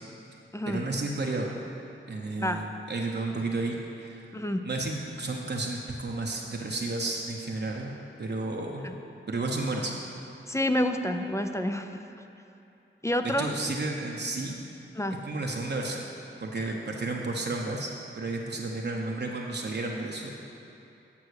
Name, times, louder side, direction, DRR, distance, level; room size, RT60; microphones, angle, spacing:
voice 1, 0.7-1.6 2.1-4.3 4.6-7.9 8.2-8.8 9.3-9.9 13.4-14.6 15.2-16.1 16.4-17.9 18.2-20.3, right 2 dB, 55° right, -1 dB, 0.8 m, -32 dB
voice 2, 4.3-4.7 8.8-8.9 10.5-12.0 13.0-13.5 15.0-15.2, left 1 dB, 15° left, 7 dB, 0.4 m, -28 dB
8.5 x 6.0 x 6.4 m, 2.8 s
wide cardioid pair, 95°, 21 cm